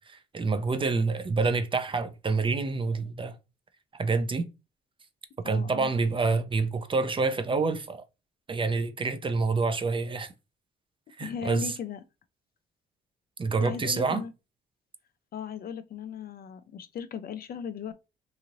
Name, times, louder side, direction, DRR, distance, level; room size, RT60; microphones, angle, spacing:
voice 1, 0.0-3.4 3.9-4.5 5.4-8.0 8.5-10.3 11.2-11.7 13.4-14.2, right 4 dB, 25° right, 0.4 m, -27 dB
voice 2, 5.4-5.9 11.2-12.0 13.6-14.3 15.3-17.9, left 7 dB, 50° left, 0.4 m, -37 dB
3.0 x 2.7 x 2.5 m
cardioid pair, 90°, 20 cm